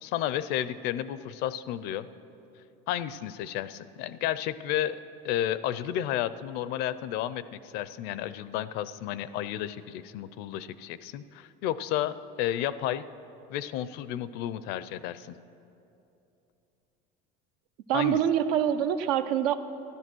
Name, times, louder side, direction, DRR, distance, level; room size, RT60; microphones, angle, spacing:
voice 1, 0.0-2.1 2.9-5.0 5.2-13.0 13.5-15.3 17.9-18.2, left 12 dB, 55° left, 15 dB, 0.5 m, -32 dB
voice 2, 17.9-19.6, right 10 dB, 85° right, 9 dB, 0.7 m, -25 dB
13.5 x 11.5 x 6.2 m, 2.9 s
cardioid pair, 155°, 19 cm